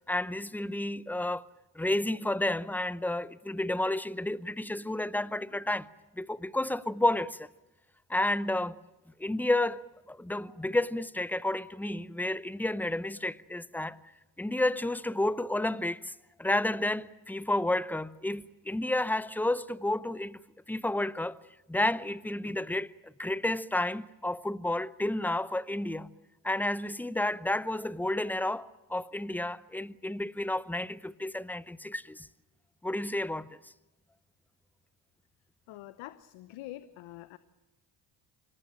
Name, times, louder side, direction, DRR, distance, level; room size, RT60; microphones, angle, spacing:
voice 1, 0.1-1.5 1.7-5.9 6.2-7.5 8.1-8.8 9.2-14.0 14.4-16.1 16.4-20.4 20.7-21.4 21.7-26.1 26.4-32.3 32.8-33.6, left 1 dB, 5° left, 0.8 m, -31 dB
voice 2, 35.7-37.4, left 15 dB, 70° left, 1.0 m, -45 dB
25.5 x 18.5 x 8.9 m
hypercardioid pair, 60°, 49 cm